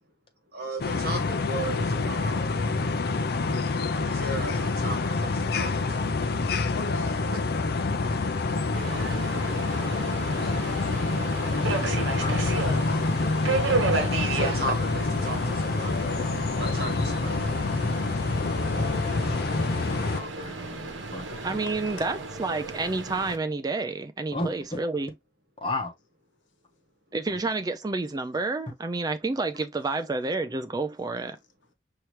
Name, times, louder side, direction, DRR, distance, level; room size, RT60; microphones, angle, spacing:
voice 1, 0.5-2.5 4.0-5.7 6.1-6.2 13.8-16.2 16.6-17.7, right 1 dB, 55° right, 1.7 m, -36 dB
sound 1, 0.8-20.2, left 3 dB, 55° left, 0.5 m, -27 dB
voice 2, 6.8-10.0 21.9-22.1, left 2 dB, 80° left, 1.3 m, -43 dB
Subway metro underground, 8.7-23.4, right 3 dB, 75° right, 1.1 m, -33 dB
voice 3, 11.5-13.0 19.9-21.7 24.3-24.8 25.6-25.9 27.3-27.4, left 2 dB, 30° left, 1.2 m, -35 dB
voice 4, 21.4-25.1 27.1-31.4, right 3 dB, 20° right, 0.3 m, -29 dB
5.7 x 2.9 x 3.1 m
head